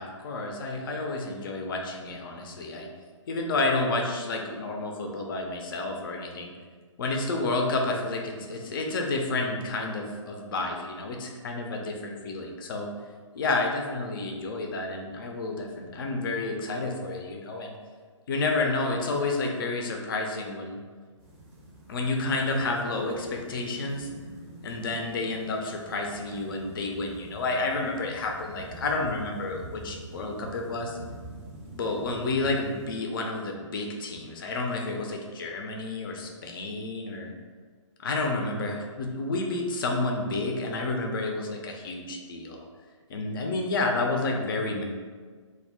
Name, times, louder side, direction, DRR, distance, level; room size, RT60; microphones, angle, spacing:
voice 1, 0.0-2.9 3.3-6.5 7.0-12.9 13.3-17.8 18.3-20.8 21.9-24.1 24.6-31.0 31.7-37.3 38.0-42.6 43.1-44.8, left 2 dB, 45° left, 2 dB, 0.4 m, -30 dB
sound 1, 21.2-32.9, right 2 dB, 25° right, 0.5 m, -46 dB
2.2 x 2.0 x 3.4 m, 1.5 s
figure-of-eight pair, 130°, 16 cm